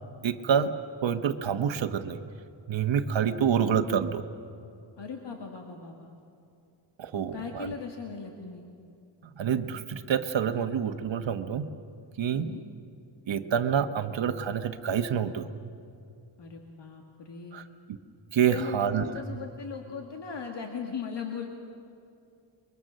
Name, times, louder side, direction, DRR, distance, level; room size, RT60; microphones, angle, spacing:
voice 1, 0.2-0.7 1.0-2.2 2.7-4.2 7.0-7.7 9.4-11.7 12.2-12.5 13.3-15.5 17.5-17.6 18.3-19.1, right 8 dB, 70° right, 7 dB, 1.2 m, -27 dB
voice 2, 3.3-4.0 5.0-6.1 7.1-8.7 12.3-12.6 16.4-17.6 18.5-21.5, left 6 dB, 65° left, 2 dB, 2.1 m, -39 dB
30.0 x 22.5 x 6.5 m, 2.5 s
wide cardioid pair, 105°, 46 cm